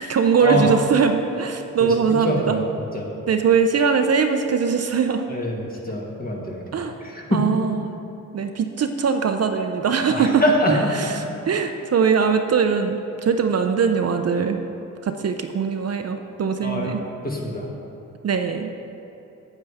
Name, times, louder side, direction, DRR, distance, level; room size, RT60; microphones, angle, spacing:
voice 1, 0.0-2.6 3.3-5.2 6.7-7.0 7.3-8.0 8.3-10.4 10.7-14.6 15.0-17.0 18.2-18.7, right 6 dB, 50° right, 6 dB, 0.5 m, -21 dB
voice 2, 2.2-2.6 2.9-3.1 5.3-6.6 7.0-7.4 10.1-10.7 11.0-11.3 16.6-16.9 17.2-17.7, left 1 dB, 25° left, -2 dB, 1.6 m, -24 dB
9.0 x 8.2 x 3.4 m, 2.9 s
cardioid pair, 75°, 33 cm